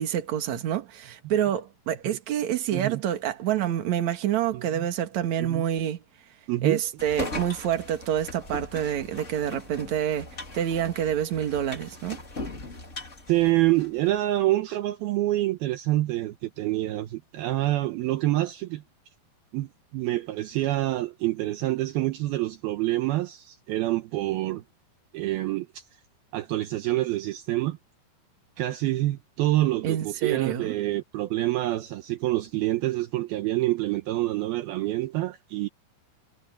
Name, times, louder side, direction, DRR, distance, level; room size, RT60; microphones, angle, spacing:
voice 1, 0.0-6.0 6.6-12.2 29.8-30.7, right 10 dB, 50° right, 2.7 m, -27 dB
voice 2, 4.5-4.9 5.4-5.6 6.5-6.8 13.3-18.8 19.5-24.6 25.1-25.8 26.3-27.8 28.6-35.7, right 16 dB, 75° right, 2.6 m, -27 dB
sound 1, 7.0-14.2, left 3 dB, 20° left, 2.2 m, -39 dB
omnidirectional pair, 4.8 m